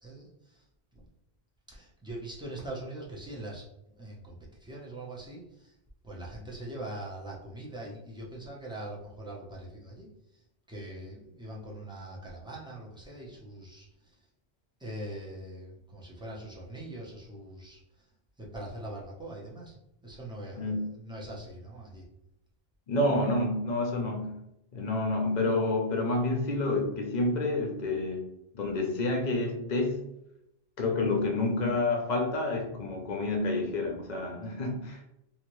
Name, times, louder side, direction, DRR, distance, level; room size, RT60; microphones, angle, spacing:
voice 1, 0.0-0.6 0.9-1.0 1.7-3.6 3.9-5.7 6.0-10.1 10.7-14.1 14.8-18.1 18.4-19.7 20.0-22.0, right 1 dB, 5° right, -4 dB, 0.6 m, -42 dB
voice 2, 20.6-20.9 22.9-24.4 24.7-28.3 28.5-30.1 30.8-35.1, left 2 dB, 50° left, 2 dB, 0.7 m, -29 dB
2.8 x 2.7 x 3.0 m, 0.82 s
omnidirectional pair, 1.1 m